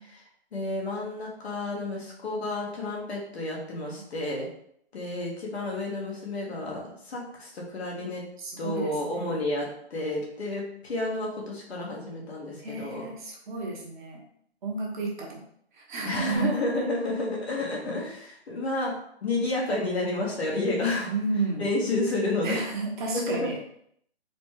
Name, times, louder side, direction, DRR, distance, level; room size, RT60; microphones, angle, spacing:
voice 1, 0.5-4.5 4.9-8.2 8.6-13.0 16.0-18.9 19.2-21.1 21.6-22.6 23.1-23.4, left 2 dB, 75° left, -3 dB, 1.4 m, -30 dB
voice 2, 8.4-9.4 12.6-14.2 14.6-15.4 15.7-16.5 21.1-21.7 22.4-23.6, right 3 dB, 50° right, -1 dB, 1.1 m, -32 dB
4.0 x 2.3 x 3.3 m, 0.69 s
hypercardioid pair, 140°, 32 cm